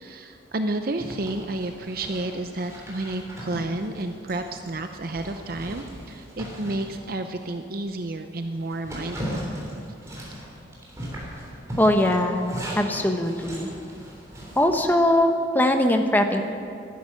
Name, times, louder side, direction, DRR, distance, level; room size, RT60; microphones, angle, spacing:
voice 1, 0.0-9.5, right 2 dB, 50° right, 7 dB, 0.7 m, -31 dB
Zipper (clothing), 1.0-7.6 8.0-8.1 8.5-14.8, equal, 15° right, 3.4 m, -38 dB
voice 2, 11.8-12.4 12.8-13.7 14.6-16.4, left 1 dB, 10° left, 5 dB, 0.9 m, -21 dB
12.5 x 10.5 x 9.8 m, 2.4 s
head